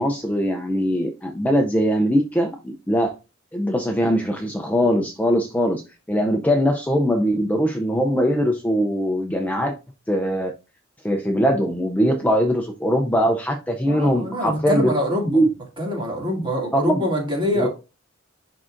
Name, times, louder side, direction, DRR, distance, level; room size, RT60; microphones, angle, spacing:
voice 1, 0.0-3.1 3.5-5.8 6.1-9.7 10.1-10.5 11.0-14.9 15.3-15.5 16.7-17.0 17.5-17.7, equal, 10° left, 0.5 m, -21 dB
voice 2, 13.9-15.4 15.8-17.7, equal, 25° right, 2.4 m, -24 dB
10.5 x 3.7 x 2.5 m
head